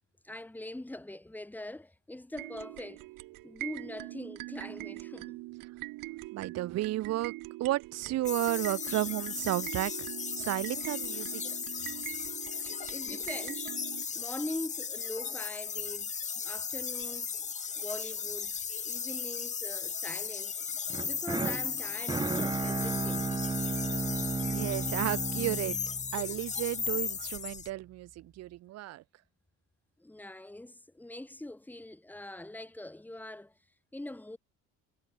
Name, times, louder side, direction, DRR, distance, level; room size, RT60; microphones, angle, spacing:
voice 1, 0.2-3.1 3.4-5.4 12.9-13.7 14.1-17.3 17.8-18.6 18.8-20.6 21.1-23.4 30.0-33.5 33.9-34.4, left 1 dB, 5° left, 4.4 m, -42 dB
sound 1, 2.3-14.1, right 21 dB, 90° right, 1.7 m, -43 dB
voice 2, 6.3-7.3 7.6-10.1 10.4-11.4 24.4-25.8 26.1-29.0, right 16 dB, 50° right, 0.8 m, -33 dB
sound 2, 8.3-27.7, left 6 dB, 20° left, 1.0 m, -36 dB
sound 3, 20.9-27.0, right 4 dB, 15° right, 1.1 m, -34 dB
cardioid pair, 160°, 33 cm